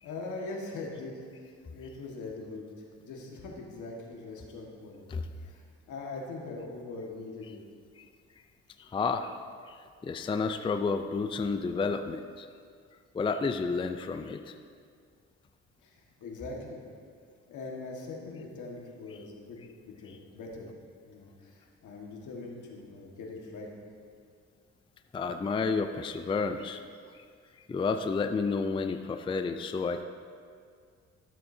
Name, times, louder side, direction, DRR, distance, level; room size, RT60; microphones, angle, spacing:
voice 1, 0.0-5.0 5.4-7.6 15.8-16.8 17.5-19.6 19.8-20.7 21.1-23.7, left 3 dB, 75° left, -1 dB, 1.7 m, -42 dB
voice 2, 8.8-9.4 9.7-12.5 13.1-14.5 25.1-26.8 27.2-27.3 27.7-30.0, left 4 dB, 15° left, 8 dB, 0.4 m, -31 dB
13.5 x 7.5 x 2.7 m, 2.1 s
cardioid pair, 90°, 30 cm